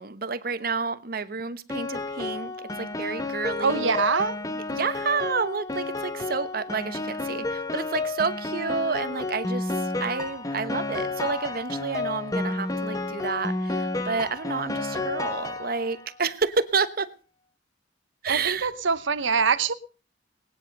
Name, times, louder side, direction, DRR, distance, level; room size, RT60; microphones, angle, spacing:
voice 1, 0.0-3.9 4.7-17.1 18.2-18.7, right 4 dB, 50° right, 1.0 m, -30 dB
Piano, 1.7-16.1, left 2 dB, 20° left, 1.1 m, -31 dB
voice 2, 3.6-4.4 18.3-19.7, right 5 dB, 90° right, 1.0 m, -24 dB
19.5 x 9.9 x 5.4 m
head